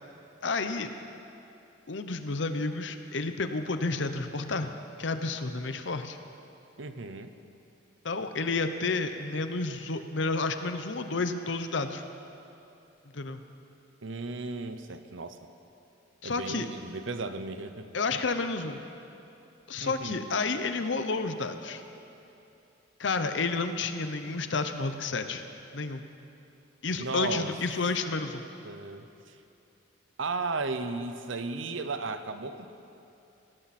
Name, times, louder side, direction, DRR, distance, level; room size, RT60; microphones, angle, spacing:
voice 1, 0.4-0.9 1.9-4.7 5.0-6.2 8.0-12.0 13.1-13.4 16.2-16.6 17.9-18.8 19.7-21.8 23.0-25.4 25.7-26.0 26.8-28.4, left 3 dB, 65° left, 8 dB, 0.8 m, -30 dB
voice 2, 6.8-7.3 14.0-15.4 16.2-17.9 19.8-20.2 27.0-27.5 28.6-29.4 30.2-32.7, right 3 dB, 70° right, 9 dB, 0.8 m, -35 dB
17.5 x 17.5 x 4.3 m, 2.8 s
head